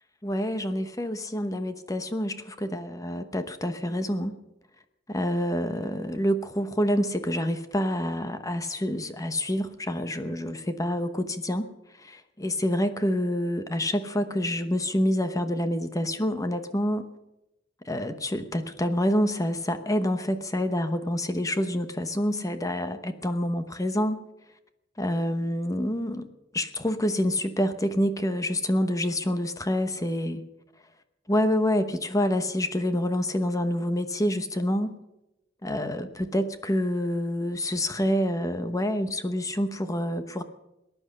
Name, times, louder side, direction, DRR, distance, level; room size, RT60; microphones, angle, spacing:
voice 1, 0.2-4.4 5.1-11.7 12.0-17.1 17.9-24.2 25.0-26.3 26.5-30.4 31.3-34.9 35.6-40.4, equal, 20° left, 9 dB, 1.0 m, -27 dB
19.5 x 10.5 x 6.6 m, 0.93 s
head